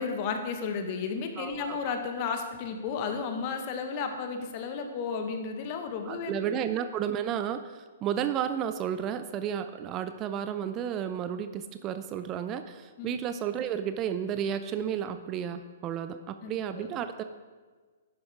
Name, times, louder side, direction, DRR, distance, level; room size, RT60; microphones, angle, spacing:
voice 1, 0.0-6.6 13.0-13.1 16.4-16.9, left 5 dB, 40° left, 6 dB, 1.5 m, -33 dB
voice 2, 1.4-1.9 6.1-7.6 8.0-17.2, right 9 dB, 30° right, 10 dB, 0.5 m, -32 dB
11.5 x 10.5 x 3.6 m, 1.4 s
figure-of-eight pair, 120°, 0 cm